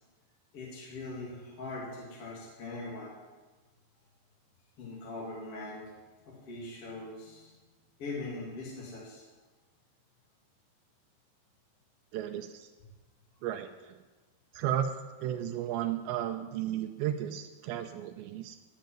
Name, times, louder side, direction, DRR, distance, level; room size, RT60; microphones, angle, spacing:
voice 1, 0.5-3.2 4.8-5.8 6.2-7.5 8.0-9.2, left 2 dB, 35° left, -5 dB, 3.4 m, -41 dB
voice 2, 12.1-12.7 13.4-14.0 14.5-14.9 15.2-18.6, right 11 dB, 80° right, 5 dB, 2.8 m, -34 dB
13.0 x 6.6 x 9.1 m, 1.2 s
omnidirectional pair, 5.3 m